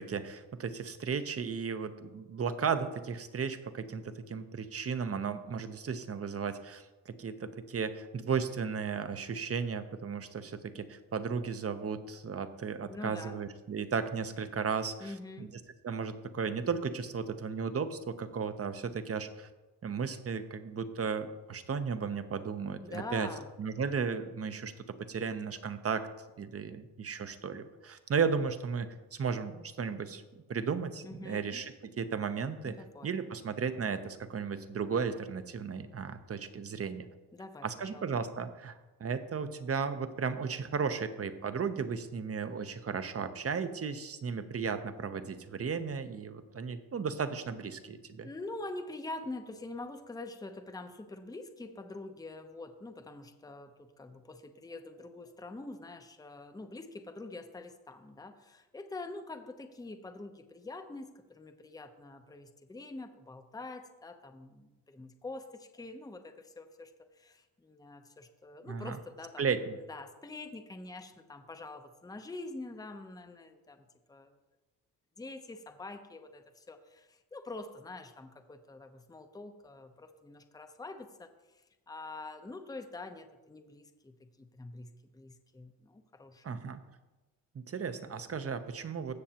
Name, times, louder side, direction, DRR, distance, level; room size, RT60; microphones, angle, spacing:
voice 1, 0.0-15.5 15.8-19.5 19.8-23.3 23.6-26.1 26.4-30.2 30.5-32.8 33.0-37.1 37.6-38.7 39.0-48.3 68.7-69.0 69.4-69.7 86.4-86.8 87.5-89.1, right 6 dB, 35° right, 10 dB, 0.8 m, -35 dB
voice 2, 12.9-13.4 15.0-15.6 22.8-23.5 31.0-31.6 32.6-33.1 37.3-38.1 48.2-69.4 69.9-74.4 75.2-86.6, left 2 dB, 10° left, 7 dB, 0.7 m, -45 dB
16.0 x 6.5 x 2.9 m, 1.1 s
cardioid pair, 80°, 40 cm